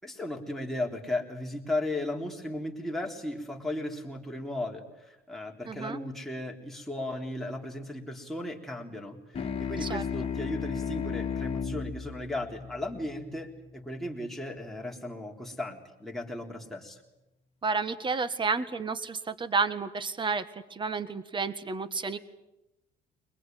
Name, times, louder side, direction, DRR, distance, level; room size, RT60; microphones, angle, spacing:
voice 1, 0.0-17.0, left 1 dB, ahead, -1 dB, 3.7 m, -36 dB
voice 2, 5.7-6.0 9.8-10.0 17.6-22.2, right 4 dB, 30° right, 13 dB, 1.6 m, -31 dB
sound 1, 9.3-14.2, left 6 dB, 35° left, 2.0 m, -35 dB
22.5 x 21.5 x 9.3 m, 0.93 s
cardioid pair, 110°, 17 cm